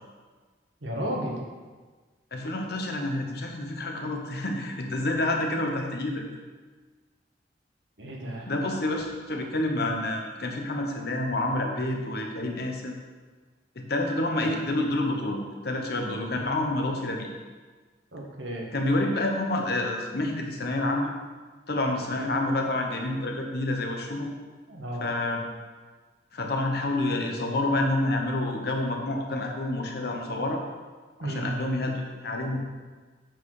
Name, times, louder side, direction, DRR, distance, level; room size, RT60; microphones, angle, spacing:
voice 1, 0.8-1.4 8.0-8.5 18.1-18.7 24.7-25.0 31.2-31.4, equal, 85° right, -1 dB, 1.5 m, -33 dB
voice 2, 2.3-6.2 8.4-13.0 13.7-15.4 15.6-17.3 18.7-21.1 21.7-24.3 25.0-25.4 26.3-30.6 31.2-32.6, left 1 dB, 60° left, 2 dB, 1.0 m, -28 dB
8.1 x 4.4 x 4.8 m, 1.4 s
head